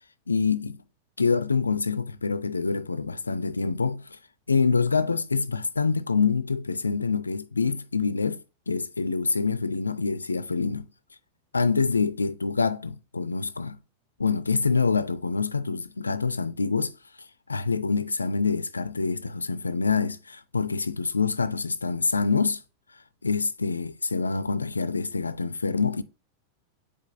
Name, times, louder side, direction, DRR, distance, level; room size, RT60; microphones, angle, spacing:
voice 1, 0.3-0.8 1.2-4.2 4.5-10.9 11.5-13.8 14.2-16.9 17.5-22.6 23.2-26.0, left 4 dB, 80° left, 0.4 m, -26 dB
8.1 x 5.1 x 2.6 m
figure-of-eight pair, 90°, 0 cm